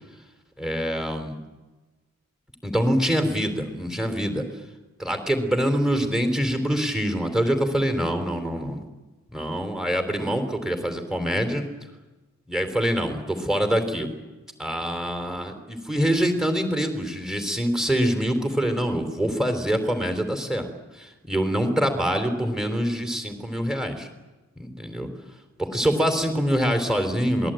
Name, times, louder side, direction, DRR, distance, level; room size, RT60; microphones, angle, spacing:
voice 1, 0.6-1.3 2.6-4.4 5.0-8.8 9.3-11.7 12.5-14.1 14.6-20.7 21.0-24.1 24.6-25.1 25.6-27.5, equal, 5° right, 6 dB, 3.7 m, -25 dB
27.0 x 20.5 x 9.1 m, 1.1 s
head